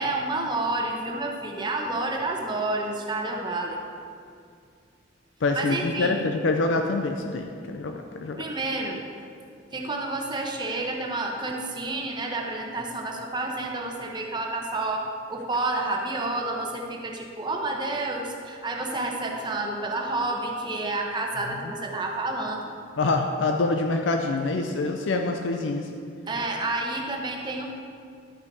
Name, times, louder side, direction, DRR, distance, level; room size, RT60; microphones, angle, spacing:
voice 1, 0.0-3.8 5.5-6.2 8.4-9.0 9.7-22.6 26.3-27.7, right 2 dB, 25° right, 0 dB, 0.9 m, -29 dB
voice 2, 5.4-8.4 23.0-25.9, left 3 dB, 90° left, 4 dB, 0.5 m, -26 dB
11.5 x 5.6 x 4.1 m, 2.3 s
head